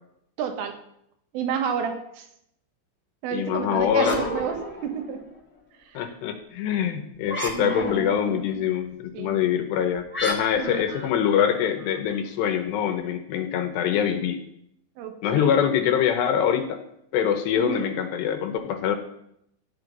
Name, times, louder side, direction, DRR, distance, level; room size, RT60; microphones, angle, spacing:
voice 1, 0.4-0.8 1.3-2.3 3.2-5.2 5.9-6.1 7.5-8.6 9.1-9.4 10.6-10.9 15.0-15.5 17.6-17.9, right 7 dB, 90° right, 5 dB, 4.0 m, -31 dB
voice 2, 3.3-4.2 5.9-14.4 15.2-16.8 17.1-19.0, left 8 dB, 75° left, 6 dB, 2.8 m, -24 dB
sound 1, 3.8-5.4 7.2-8.3 10.1-12.0, left 1 dB, 15° left, 0.4 m, -32 dB
13.5 x 5.7 x 9.3 m, 0.76 s
omnidirectional pair, 5.6 m